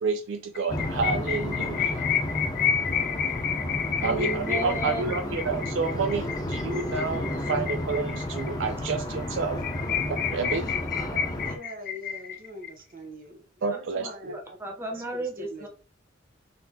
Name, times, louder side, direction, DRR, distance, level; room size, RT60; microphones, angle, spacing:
voice 1, 0.0-2.1 4.0-9.6 10.1-10.7 13.6-14.4, right 4 dB, 65° right, 0.4 m, -30 dB
sound 1, 0.6-8.5 8.9-9.0 9.2-9.3 9.6-12.7, left 8 dB, 50° left, 0.5 m, -30 dB
sound 2, 0.7-11.6, left 1 dB, 20° left, 0.7 m, -32 dB
voice 2, 4.0-5.4 7.2-7.3 8.0-8.1 14.0-15.7, right 2 dB, 15° right, 0.8 m, -35 dB
voice 3, 11.0-14.6 15.4-15.7, equal, 45° right, 1.0 m, -44 dB
4.1 x 3.5 x 2.8 m
head